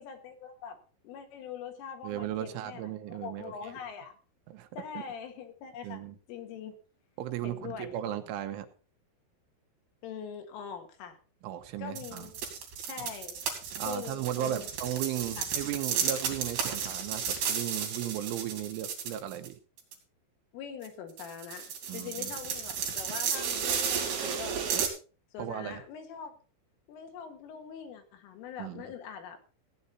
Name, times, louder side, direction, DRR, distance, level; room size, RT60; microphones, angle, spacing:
voice 1, 0.0-4.1 4.8-6.0 6.3-6.8 7.4-7.9 10.0-11.2 11.8-12.3 12.9-13.4 13.9-14.7 15.4-15.5 20.5-24.6 25.3-26.3 26.9-29.4, left 7 dB, 85° left, 5 dB, 4.4 m, -43 dB
voice 2, 2.0-3.5 4.5-4.7 5.0-5.1 5.8-6.2 7.2-8.7 11.4-12.3 13.8-19.6 21.9-22.3 24.7-24.8 25.4-25.8 28.6-28.9, right 12 dB, 80° right, 7 dB, 3.4 m, -36 dB
sound 1, 12.0-19.5 19.8-19.9 20.8-20.9 21.2-24.9, right 7 dB, 60° right, 4.3 m, -33 dB
16.0 x 9.5 x 4.1 m, 0.36 s
omnidirectional pair, 5.6 m